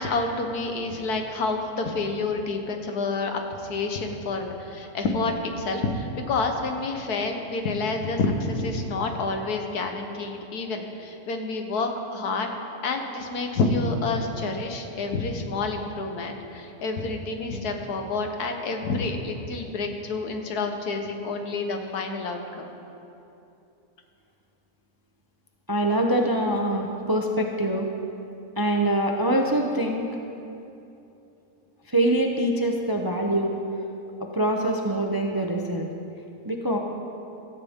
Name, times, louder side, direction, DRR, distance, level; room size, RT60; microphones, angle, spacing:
voice 1, 0.0-12.5 12.8-22.7, left 3 dB, 85° left, 4 dB, 1.7 m, -28 dB
voice 2, 25.7-27.9 28.6-30.1 31.9-33.6 34.2-35.9 36.5-36.8, right 1 dB, 25° right, 2 dB, 0.5 m, -24 dB
16.0 x 14.0 x 3.6 m, 2.9 s
omnidirectional pair, 1.6 m